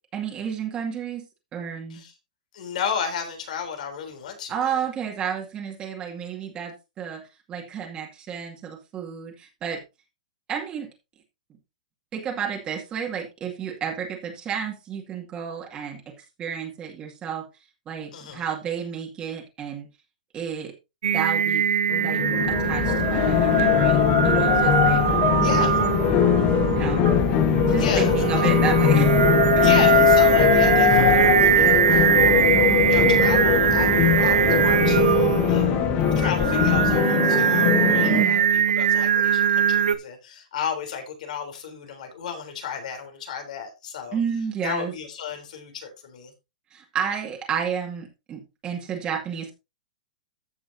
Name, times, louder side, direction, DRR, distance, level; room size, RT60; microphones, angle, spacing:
voice 1, 0.1-1.2 1.5-2.0 4.5-7.2 7.5-9.8 10.5-10.9 12.1-16.0 16.4-17.4 17.9-19.9 20.3-20.7 21.1-21.7 22.0-25.0 26.8-27.1 27.6-29.3 29.6-29.7 38.0-38.4 44.1-44.9 46.7-49.5, right 7 dB, 20° right, 0 dB, 2.2 m, -31 dB
voice 2, 2.5-4.8 18.1-18.5 25.4-25.8 27.8-28.5 29.6-32.2 32.9-33.9 34.2-35.0 35.5-35.8 36.1-44.2 44.6-46.3, left 7 dB, 65° left, 5 dB, 3.5 m, -33 dB
Singing, 21.0-39.9, right 9 dB, 90° right, 0.8 m, -22 dB
sound 1, 21.9-38.2, left 10 dB, 30° left, 1.2 m, -21 dB
sound 2, 22.4-37.1, left 7 dB, 15° left, 0.5 m, -32 dB
15.0 x 6.1 x 2.8 m, 0.25 s
hypercardioid pair, 150°, 4 cm